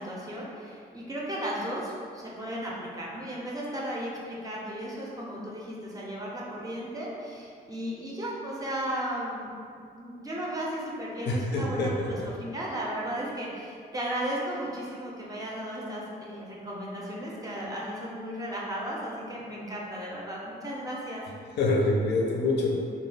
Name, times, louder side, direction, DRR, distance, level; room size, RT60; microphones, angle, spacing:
voice 1, 0.0-9.5 9.9-21.3, right 1 dB, 20° right, -4 dB, 0.5 m, -35 dB
voice 2, 11.3-12.3 21.6-22.8, left 2 dB, 75° left, -1 dB, 0.5 m, -26 dB
2.3 x 2.2 x 3.2 m, 2.3 s
wide cardioid pair, 130°, 18 cm